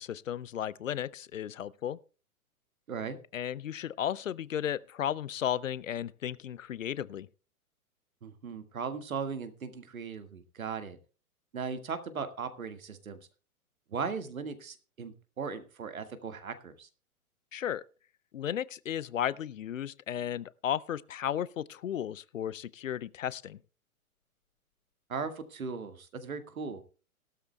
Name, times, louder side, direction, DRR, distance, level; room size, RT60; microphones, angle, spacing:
voice 1, 0.0-2.0 3.3-7.3 17.5-17.8 18.3-23.6, left 10 dB, 60° left, 0.6 m, -34 dB
voice 2, 8.2-11.0 11.5-13.2 13.9-16.9 25.1-26.8, right 5 dB, 65° right, 1.8 m, -38 dB
17.5 x 12.5 x 2.2 m
figure-of-eight pair, 115°, 44 cm